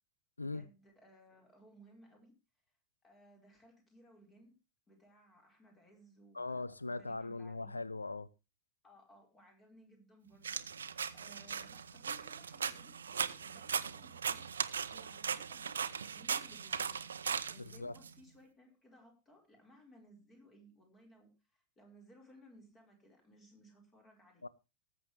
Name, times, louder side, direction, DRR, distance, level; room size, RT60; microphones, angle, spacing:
voice 1, 0.4-2.3 3.0-4.6 4.9-7.8 8.8-10.6 11.1-15.8 16.1-17.1 17.5-24.4, equal, 20° left, 4.8 m, -61 dB
voice 2, 6.3-8.3 17.6-17.9 24.4-24.5, left 3 dB, 80° left, 0.6 m, -40 dB
sound 1, 10.4-18.1, right 7 dB, 70° right, 0.8 m, -38 dB
19.0 x 7.7 x 3.3 m
figure-of-eight pair, 90°, 0 cm